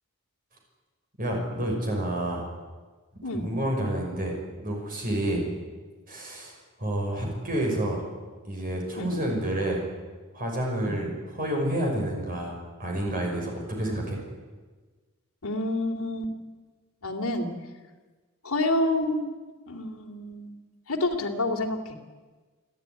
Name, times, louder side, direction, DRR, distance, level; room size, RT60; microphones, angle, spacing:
voice 1, 1.2-2.5 3.3-4.4 4.6-5.4 6.1-8.0 8.4-9.9 10.3-14.2, right 1 dB, 40° right, 0 dB, 5.8 m, -29 dB
voice 2, 15.4-16.3 17.0-17.5 18.4-19.3 19.7-20.6 20.9-22.0, left 1 dB, 85° left, 2 dB, 2.8 m, -28 dB
29.0 x 12.5 x 9.7 m, 1.4 s
head